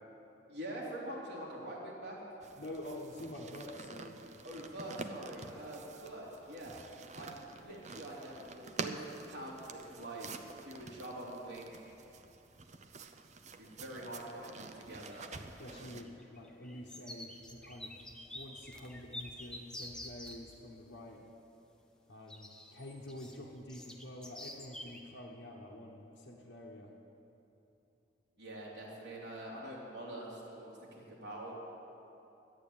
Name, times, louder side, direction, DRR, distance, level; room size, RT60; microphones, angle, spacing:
voice 1, 0.5-2.2 4.4-6.7 7.1-10.3 10.6-11.9 13.6-15.2 28.4-31.6, right 1 dB, 65° right, -5 dB, 3.3 m, -45 dB
sound 1, 2.4-16.0, right 4 dB, 40° right, 0.6 m, -48 dB
voice 2, 2.6-4.3 15.6-18.0 18.3-21.3 22.1-26.9, left 1 dB, 70° left, -4 dB, 1.2 m, -47 dB
sound 2, 6.6-6.8 7.1-7.7 9.7-9.8 10.4-10.5 10.8-11.1 11.4-12.0 12.5-12.6 13.7-14.2 14.4-20.4 22.3-25.0, left 1 dB, 5° left, 0.9 m, -49 dB
11.5 x 9.7 x 8.8 m, 3.0 s
head